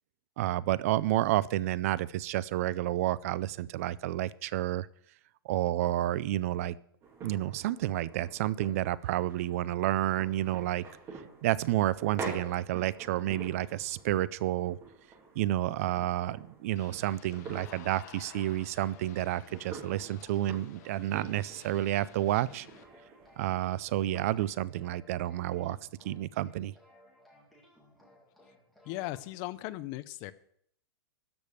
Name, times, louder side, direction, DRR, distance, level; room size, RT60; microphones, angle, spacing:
voice 1, 0.4-4.9 5.4-6.7 7.2-10.8 11.4-14.8 15.4-22.7 23.4-25.8 26.0-26.7, right 14 dB, 35° right, 20 dB, 0.4 m, -30 dB
sound 1, 7.0-24.4, right 4 dB, 20° right, 2.5 m, -48 dB
sound 2, 16.8-22.8, left 11 dB, 45° left, 0.9 m, -54 dB
sound 3, 18.7-29.2, left 1 dB, ahead, 2.0 m, -61 dB
voice 2, 28.8-30.3, left 17 dB, 25° left, 15 dB, 0.5 m, -37 dB
13.0 x 5.2 x 8.2 m, 0.66 s
hypercardioid pair, 165°, 13 cm